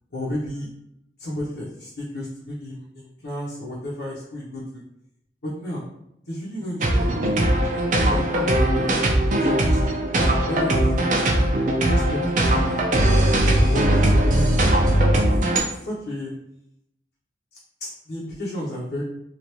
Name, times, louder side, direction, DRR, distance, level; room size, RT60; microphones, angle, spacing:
voice 1, 0.1-0.7 1.2-4.8 5.4-5.9 6.3-8.5 9.3-10.0 10.5-11.1 11.9-12.8 13.6-15.2 15.8-16.3 17.8-19.0, left 1 dB, 80° left, -7 dB, 0.8 m, -32 dB
sound 1, 6.8-15.6, right 1 dB, 45° right, 0.5 m, -20 dB
3.2 x 2.4 x 3.0 m, 0.77 s
head